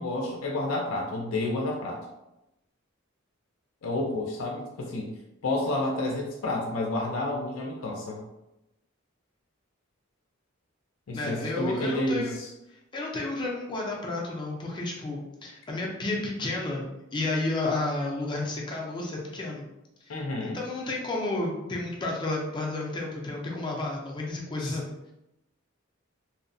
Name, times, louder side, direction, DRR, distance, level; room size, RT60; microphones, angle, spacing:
voice 1, 0.0-2.0 3.8-5.1 5.4-8.2 11.1-12.3 20.1-20.6 24.6-24.8, left 2 dB, 85° left, -1 dB, 0.4 m, -30 dB
voice 2, 11.1-12.3 12.9-16.8 17.1-19.6 20.0-24.9, left 2 dB, 25° left, -2 dB, 0.4 m, -31 dB
2.7 x 2.1 x 2.6 m, 0.91 s
head